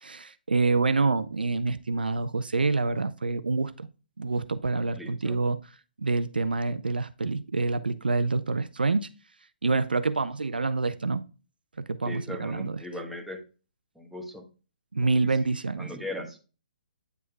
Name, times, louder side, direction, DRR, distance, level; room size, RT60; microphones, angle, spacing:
voice 1, 0.0-3.9 4.2-5.6 6.0-9.1 9.6-11.2 11.9-12.8 14.9-15.9, right 3 dB, 75° right, 0.5 m, -27 dB
voice 2, 5.0-5.4 12.0-13.4 13.9-14.5 15.8-16.4, left 1 dB, ahead, 1.2 m, -38 dB
9.4 x 6.2 x 2.3 m
figure-of-eight pair, 130°, 5 cm